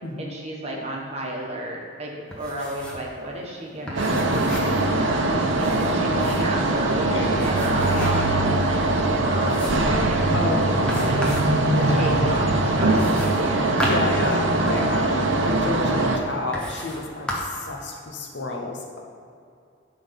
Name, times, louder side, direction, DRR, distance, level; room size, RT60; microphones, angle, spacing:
voice 1, 0.2-4.2 5.0-11.2 11.9-14.1, right 1 dB, 30° right, -1 dB, 1.2 m, -32 dB
sound 1, 2.3-3.1 3.3-3.4 3.9-4.8 5.5-6.6 7.3-8.3 8.8-8.9 9.5-9.9 10.9-11.5 12.9-14.9 15.7-15.8 16.5-17.0 17.3-17.6, equal, 5° left, 1.1 m, -33 dB
sound 2, 4.0-16.2, right 2 dB, 70° right, 0.8 m, -22 dB
voice 2, 4.4-4.8 7.0-7.3 10.3-11.1 11.7-12.1 13.8-19.0, left 2 dB, 60° left, 0 dB, 0.9 m, -30 dB
10.5 x 3.9 x 5.7 m, 2.4 s
head